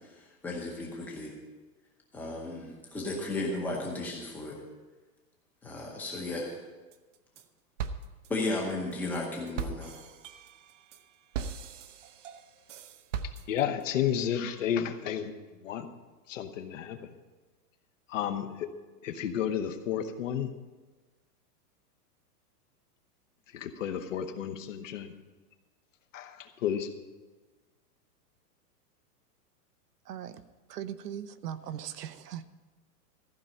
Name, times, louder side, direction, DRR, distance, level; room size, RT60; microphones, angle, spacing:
voice 1, 0.0-1.3 2.1-4.6 5.6-6.5 8.3-10.0, left 2 dB, 5° left, -2 dB, 0.8 m, -34 dB
sound 1, 6.9-7.5 7.8-13.8, right 6 dB, 50° right, 0.8 m, -39 dB
voice 2, 13.2-15.3 15.6-15.9 16.3-17.1 18.1-18.7 19.0-20.5 23.5-25.1 26.1-26.9, left 9 dB, 50° left, 7 dB, 1.0 m, -32 dB
voice 3, 30.1-30.4 30.7-32.4, right 10 dB, 75° right, 12 dB, 0.9 m, -39 dB
14.5 x 5.5 x 8.9 m, 1.3 s
supercardioid pair, 175°, 48 cm